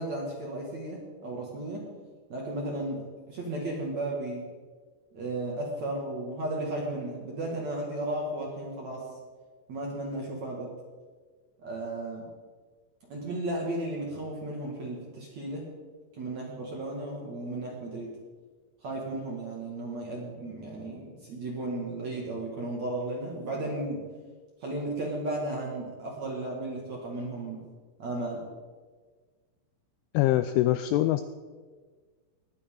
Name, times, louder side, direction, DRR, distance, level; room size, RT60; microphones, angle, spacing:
voice 1, 0.0-1.9 2.3-4.5 5.1-9.1 9.7-10.7 11.6-12.3 13.1-15.7 16.1-18.1 18.8-24.0 24.6-27.6 28.0-28.4, right 2 dB, 50° right, -2 dB, 2.4 m, -34 dB
voice 2, 30.1-31.2, left 14 dB, 85° left, 11 dB, 2.7 m, -23 dB
20.5 x 14.0 x 3.8 m, 1.5 s
omnidirectional pair, 5.9 m